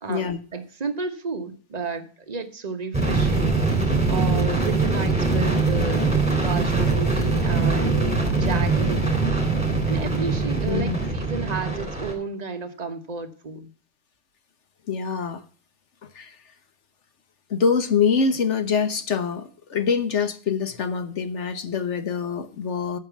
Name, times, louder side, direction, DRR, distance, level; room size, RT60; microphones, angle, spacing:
voice 1, 0.0-6.1 6.4-9.2 9.9-13.7, right 4 dB, 25° right, 7 dB, 1.0 m, -32 dB
sound 1, 2.9-12.1, right 3 dB, 5° right, 3.1 m, -22 dB
voice 2, 10.7-11.0 14.9-15.4 16.1-16.4 17.5-23.0, left 6 dB, 50° left, 11 dB, 0.9 m, -24 dB
9.2 x 6.8 x 7.1 m, 0.41 s
omnidirectional pair, 2.0 m